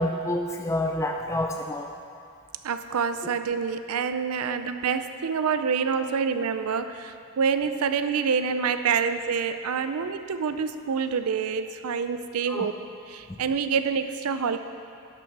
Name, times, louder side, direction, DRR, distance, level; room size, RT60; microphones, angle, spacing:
voice 1, 0.0-1.9 12.5-12.7 13.3-13.4, left 1 dB, 15° left, 3 dB, 0.4 m, -28 dB
voice 2, 2.6-12.7 13.1-14.6, right 6 dB, 75° right, 10 dB, 0.5 m, -27 dB
11.5 x 5.9 x 6.0 m, 2.5 s
head